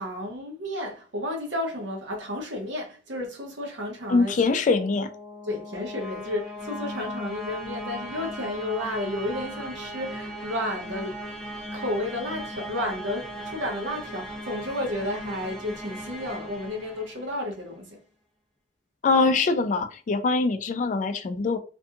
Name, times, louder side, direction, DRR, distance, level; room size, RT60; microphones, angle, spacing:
voice 1, 0.0-4.3 5.4-11.2 11.7-18.0, left 1 dB, 85° right, 0.8 m, -32 dB
voice 2, 4.1-5.1 19.0-21.6, left 3 dB, 45° left, 0.3 m, -23 dB
sound 1, 4.5-17.6, equal, 5° left, 0.6 m, -38 dB
2.6 x 2.3 x 2.6 m
head